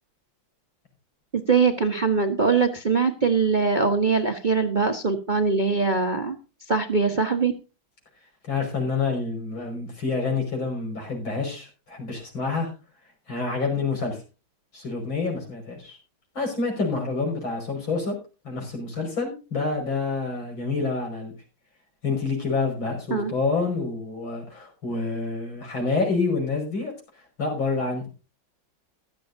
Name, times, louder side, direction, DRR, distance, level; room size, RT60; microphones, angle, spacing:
voice 1, 1.3-6.4 6.7-7.5 23.1-23.3, right 4 dB, 30° right, 5 dB, 0.9 m, -22 dB
voice 2, 8.4-12.7 13.3-14.2 14.7-16.0 16.3-18.1 18.4-21.3 22.0-26.9 27.4-28.0, left 4 dB, 75° left, 1 dB, 6.3 m, -27 dB
15.5 x 12.5 x 2.7 m, 0.31 s
omnidirectional pair, 2.2 m